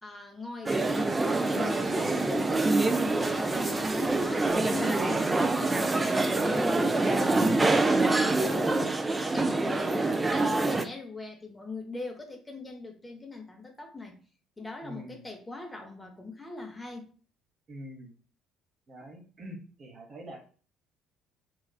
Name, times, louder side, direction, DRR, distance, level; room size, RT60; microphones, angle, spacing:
voice 1, 0.0-14.2 14.6-17.1, left 3 dB, 15° left, 0.7 m, -42 dB
sound 1, 0.7-10.9, right 2 dB, 15° right, 0.3 m, -26 dB
voice 2, 14.8-15.3 17.7-18.1 18.9-20.5, equal, 35° right, 0.9 m, -44 dB
3.0 x 2.3 x 2.2 m
figure-of-eight pair, 55°, 0 cm